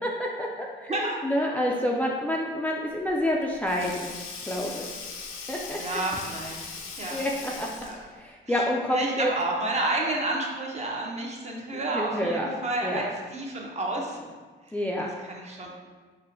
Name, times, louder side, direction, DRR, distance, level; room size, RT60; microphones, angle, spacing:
voice 1, 0.0-4.1 4.5-4.9 5.5-5.8 7.1-7.7 8.2-9.3 11.9-12.5 12.8-13.1 14.7-15.1, left 1 dB, 10° left, -2 dB, 0.3 m, -28 dB
Sink (filling or washing), 3.0-8.2, left 5 dB, 90° left, 0.5 m, -40 dB
voice 2, 5.7-6.7 7.0-8.0 8.5-14.3 14.7-14.8 15.0-15.7, right 2 dB, 35° right, -1 dB, 0.7 m, -31 dB
5.3 x 2.1 x 2.6 m, 1.5 s
cardioid pair, 90°, 20 cm